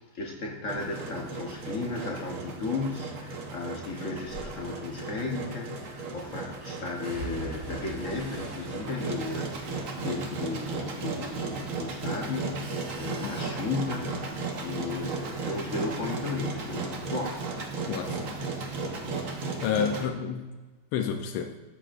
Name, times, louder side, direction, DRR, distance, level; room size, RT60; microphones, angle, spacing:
voice 1, 0.0-17.4 20.0-20.1, left 3 dB, 45° left, 0 dB, 1.2 m, -35 dB
Engine, 0.7-20.1, right 3 dB, 50° right, 1.2 m, -35 dB
sound 1, 4.3-4.5 5.8-6.2 7.0-11.3 11.6-12.2 12.6-15.9 16.1-17.3 17.5-17.7, equal, 80° right, 4.1 m, -46 dB
voice 2, 17.9-18.4 19.6-20.6 20.9-21.6, left 7 dB, 85° left, 6 dB, 1.5 m, -30 dB
12.5 x 7.7 x 2.5 m, 1.3 s
omnidirectional pair, 2.3 m